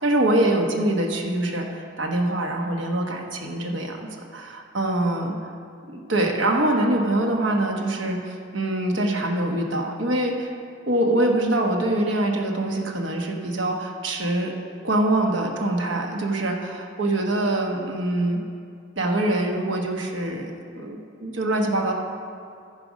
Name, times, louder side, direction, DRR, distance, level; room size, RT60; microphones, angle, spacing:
voice 1, 0.0-4.0 4.3-5.3 5.8-10.5 10.9-14.5 14.8-18.4 19.0-20.5 20.8-21.9, right 1 dB, 60° right, 1 dB, 1.1 m, -24 dB
14.0 x 5.0 x 5.2 m, 2.4 s
head